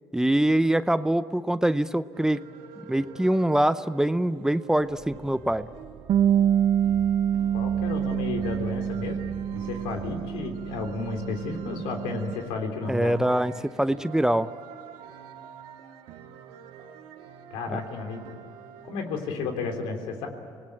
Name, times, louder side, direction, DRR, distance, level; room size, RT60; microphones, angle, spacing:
voice 1, 0.1-2.5 2.9-5.7 12.9-14.5 17.7-17.8, right 1 dB, 5° right, 13 dB, 0.6 m, -24 dB
sound 1, 2.1-19.4, right 8 dB, 85° right, 1.7 m, -47 dB
sound 2, 4.9-12.5, right 5 dB, 40° right, 2.1 m, -45 dB
Bass guitar, 6.1-12.3, right 9 dB, 60° right, 0.6 m, -26 dB
voice 2, 7.5-9.2 9.5-13.2 17.5-18.2 18.8-20.3, left 4 dB, 85° left, 4 dB, 3.6 m, -32 dB
26.0 x 20.0 x 8.8 m, 2.4 s
cardioid pair, 95°, 9 cm